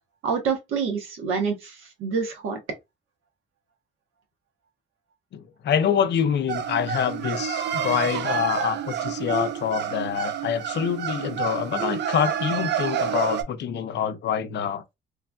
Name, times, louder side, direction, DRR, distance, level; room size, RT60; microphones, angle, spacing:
voice 1, 0.2-1.7 2.0-2.6, right 5 dB, 85° right, 1.1 m, -26 dB
voice 2, 5.3-14.8, left 8 dB, 60° left, 0.5 m, -26 dB
sound 1, 6.5-13.4, right 8 dB, 60° right, 0.5 m, -28 dB
3.0 x 2.5 x 2.2 m
cardioid pair, 90°, 20 cm